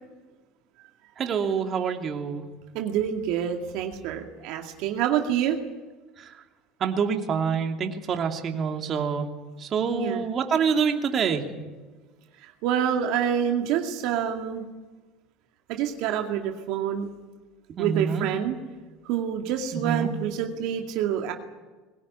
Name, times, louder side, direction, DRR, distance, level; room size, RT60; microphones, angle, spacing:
voice 1, 1.2-2.4 6.8-9.3 9.6-11.5 17.8-18.3 19.7-20.1, right 6 dB, 40° right, 4 dB, 2.8 m, -26 dB
voice 2, 2.7-5.6 9.9-10.3 12.4-14.6 15.7-17.1 17.8-18.6 19.0-21.3, right 9 dB, 70° right, 3 dB, 2.2 m, -27 dB
22.0 x 17.5 x 9.9 m, 1.2 s
supercardioid pair, 90°, 0 cm